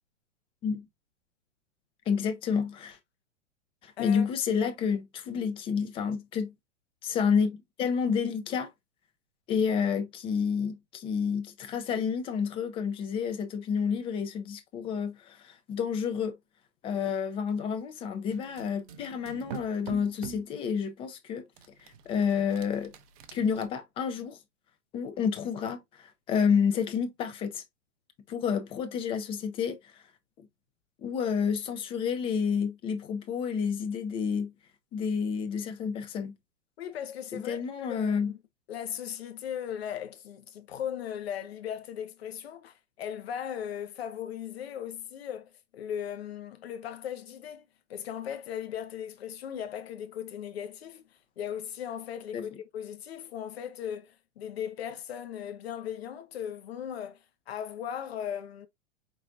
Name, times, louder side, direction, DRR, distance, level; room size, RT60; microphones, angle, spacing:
voice 1, 2.1-3.0 3.8-6.5 7.0-8.7 9.5-16.4 16.8-21.5 22.1-22.9 23.3-24.4 24.9-27.6 28.3-29.8 31.0-34.5 34.9-36.3 37.3-38.3 52.3-52.5, left 6 dB, 15° left, 0.5 m, -29 dB
sound 1, 18.3-20.5 21.6-23.7, right 8 dB, 30° right, 0.6 m, -45 dB
voice 2, 36.8-38.4 38.7-47.6 47.9-51.0 51.4-57.2 57.5-58.7, left 9 dB, 55° left, 0.9 m, -38 dB
4.9 x 3.8 x 2.5 m
figure-of-eight pair, 105°, 37 cm